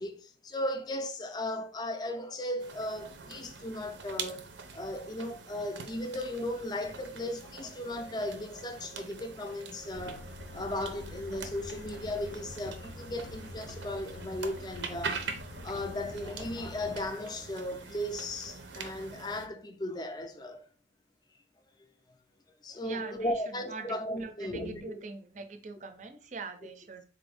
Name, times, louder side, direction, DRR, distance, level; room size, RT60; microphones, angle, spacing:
voice 1, 0.0-4.4 4.7-10.3 10.5-15.3 15.6-20.7 22.6-25.0, left 1 dB, 20° left, 0.4 m, -36 dB
sound 1, 2.6-19.5, right 5 dB, 85° right, 0.6 m, -44 dB
sound 2, 9.9-17.1, left 3 dB, 90° left, 0.4 m, -47 dB
voice 2, 22.8-27.0, right 4 dB, 40° right, 0.5 m, -43 dB
4.0 x 2.6 x 3.4 m
head